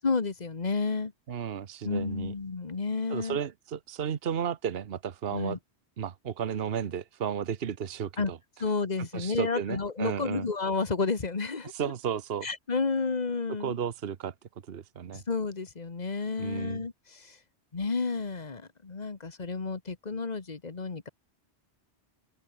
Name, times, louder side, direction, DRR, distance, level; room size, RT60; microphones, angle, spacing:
voice 1, 0.0-1.1 1.8-3.4 5.3-5.6 8.2-8.3 8.6-11.7 12.4-13.7 15.1-17.4 17.7-21.1, left 4 dB, 40° left, 1.5 m, -31 dB
voice 2, 1.3-2.3 3.1-5.6 6.0-8.4 9.1-10.5 11.7-12.5 13.6-14.3 14.7-15.2 16.4-16.8, right 8 dB, 65° right, 1.2 m, -33 dB
open air
omnidirectional pair, 1.1 m